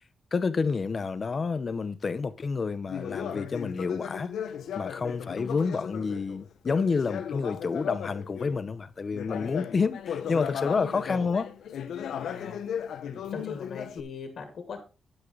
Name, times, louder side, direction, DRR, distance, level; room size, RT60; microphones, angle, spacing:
voice 1, 0.3-4.3 4.7-11.5, left 4 dB, 30° left, 0.7 m, -29 dB
Conversation, 2.9-8.6 9.1-14.0, left 8 dB, 90° left, 1.1 m, -36 dB
voice 2, 12.2-12.6 13.0-14.8, left 5 dB, 50° left, 2.4 m, -40 dB
10.0 x 9.1 x 3.8 m
wide cardioid pair, 175°, 0 cm